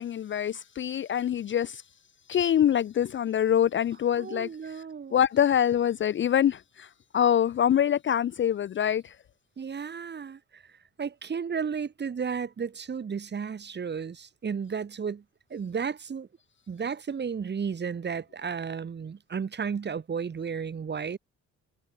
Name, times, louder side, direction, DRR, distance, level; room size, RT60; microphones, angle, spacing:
voice 1, 0.0-1.8 2.3-4.8 5.1-9.2, left 9 dB, 40° left, 0.4 m, -25 dB
voice 2, 4.2-5.1 9.6-10.6 11.0-15.2 15.5-16.3 16.7-21.2, right 6 dB, 35° right, 1.5 m, -33 dB
cardioid pair, 90°, 30 cm